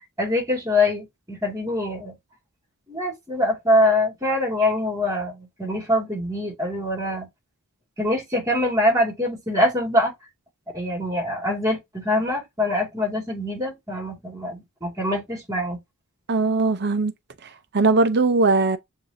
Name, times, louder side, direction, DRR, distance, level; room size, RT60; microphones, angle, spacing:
voice 1, 0.2-2.1 2.9-7.3 8.0-10.1 10.7-15.8, left 1 dB, 15° right, 2.2 m, -24 dB
voice 2, 16.3-17.1 17.4-18.8, right 3 dB, 50° right, 0.7 m, -20 dB
6.8 x 2.7 x 2.7 m
head